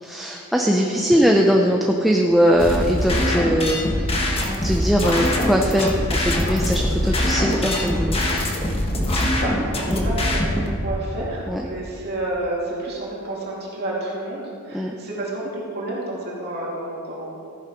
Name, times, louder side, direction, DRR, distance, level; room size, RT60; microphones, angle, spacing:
voice 1, 0.0-4.1 4.6-5.9 6.2-8.2 9.9-10.0 11.5-11.7 14.7-15.0, equal, ahead, 0 dB, 0.6 m, -20 dB
voice 2, 0.8-1.3 9.1-17.4, right 1 dB, 45° right, -5 dB, 2.8 m, -30 dB
sound 1, 2.1-11.8, equal, 60° left, 1.8 m, -39 dB
sound 2, 2.6-10.7, left 1 dB, 25° left, 1.2 m, -23 dB
14.5 x 7.1 x 5.2 m, 2.4 s
head